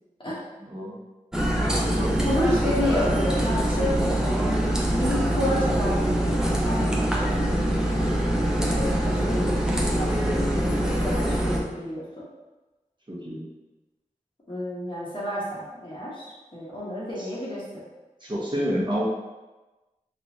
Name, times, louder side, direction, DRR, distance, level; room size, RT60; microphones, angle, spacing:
voice 1, 0.6-1.0 1.8-2.1 13.1-13.5 17.2-17.3 18.2-19.0, equal, 35° right, -6 dB, 1.1 m, -29 dB
sound 1, 1.3-11.6, right 1 dB, 5° right, 0.6 m, -24 dB
voice 2, 2.2-4.6 4.9-7.5 8.7-12.2 14.5-17.8, left 1 dB, 35° left, -7 dB, 1.1 m, -30 dB
3.6 x 3.3 x 2.8 m, 1.1 s
wide cardioid pair, 70°, 14 cm